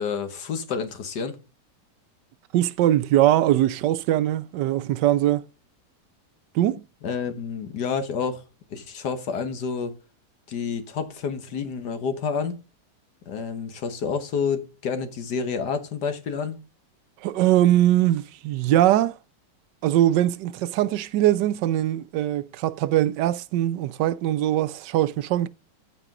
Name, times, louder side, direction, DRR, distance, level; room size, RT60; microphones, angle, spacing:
voice 1, 0.0-1.4 7.0-8.4 8.7-9.9 10.5-12.6 13.3-16.6, left 6 dB, 75° left, 1.8 m, -29 dB
voice 2, 2.5-5.4 6.5-6.8 17.2-19.2 19.8-25.5, right 13 dB, 90° right, 1.3 m, -21 dB
13.5 x 5.0 x 3.7 m
omnidirectional pair, 1.8 m